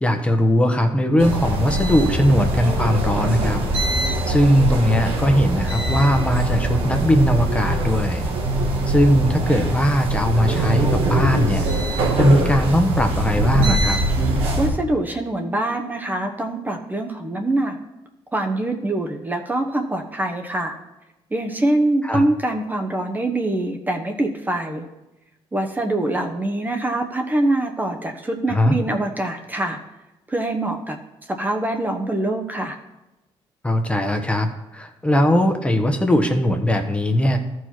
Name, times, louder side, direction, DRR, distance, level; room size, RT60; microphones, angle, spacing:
voice 1, 0.0-3.6 4.3-8.2 8.9-11.7 12.2-14.0 22.0-22.2 28.5-28.8 33.6-37.4, equal, 10° left, 4 dB, 1.0 m, -19 dB
sound 1, 1.2-14.7, right 1 dB, 80° right, 1.7 m, -22 dB
voice 2, 14.4-17.8 18.3-20.8 21.3-24.9 25.5-29.8 30.3-31.0 31.4-32.8, right 1 dB, 20° right, 3 dB, 1.0 m, -24 dB
13.5 x 4.7 x 4.5 m, 0.98 s
cardioid pair, 95°, 10 cm